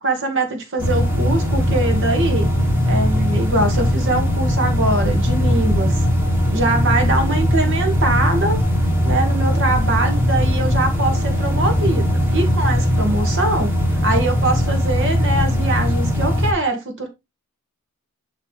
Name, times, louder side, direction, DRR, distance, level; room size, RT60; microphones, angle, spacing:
voice 1, 0.0-2.5 2.9-6.1 6.5-8.6 9.0-13.7 14.0-17.1, right 2 dB, 60° right, 2.2 m, -22 dB
sound 1, 0.8-16.5, equal, 10° right, 1.7 m, -19 dB
10.5 x 3.8 x 3.6 m
head